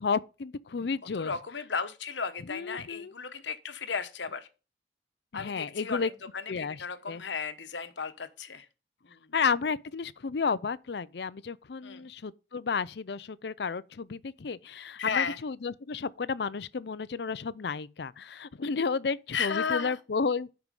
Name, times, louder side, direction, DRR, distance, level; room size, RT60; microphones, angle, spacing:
voice 1, 0.0-1.3 2.5-3.1 5.3-6.1 6.5-6.8 7.1-7.2 9.3-20.5, left 5 dB, 70° left, 0.5 m, -32 dB
voice 2, 1.1-4.5 5.3-8.7 9.0-9.2 11.8-12.1 15.0-15.4 19.3-20.0, left 6 dB, 90° left, 1.1 m, -34 dB
12.5 x 4.8 x 5.4 m
head